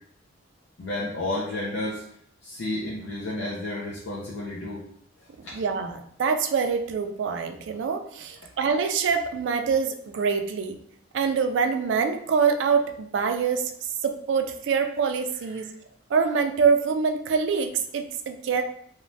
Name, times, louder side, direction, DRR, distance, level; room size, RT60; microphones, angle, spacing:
voice 1, 0.8-2.0 2.4-4.8 5.4-5.6 15.6-15.7, left 1 dB, 70° left, -5 dB, 0.5 m, -31 dB
voice 2, 5.5-10.8 11.1-13.7 14.0-15.7 16.1-18.6, right 5 dB, 70° right, 6 dB, 0.3 m, -25 dB
3.1 x 2.1 x 2.6 m, 0.65 s
head